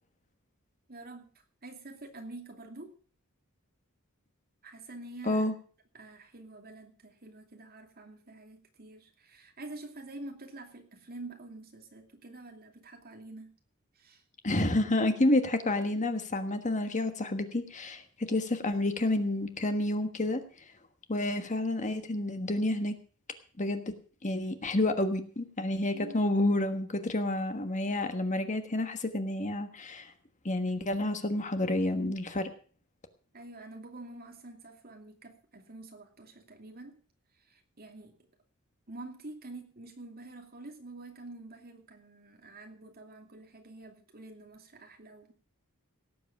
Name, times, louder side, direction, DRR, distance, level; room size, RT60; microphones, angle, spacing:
voice 1, 0.9-1.3 1.6-2.9 4.6-5.5 5.9-13.5 13.9-14.2 25.9-26.3 33.3-37.0 37.4-38.2 38.9-45.3, right 2 dB, 45° right, 4 dB, 2.6 m, -47 dB
voice 2, 14.4-20.4 21.1-23.0 23.6-23.9 24.2-30.1 30.4-32.5, left 1 dB, 35° left, 8 dB, 1.4 m, -29 dB
17.5 x 8.0 x 6.0 m, 0.40 s
head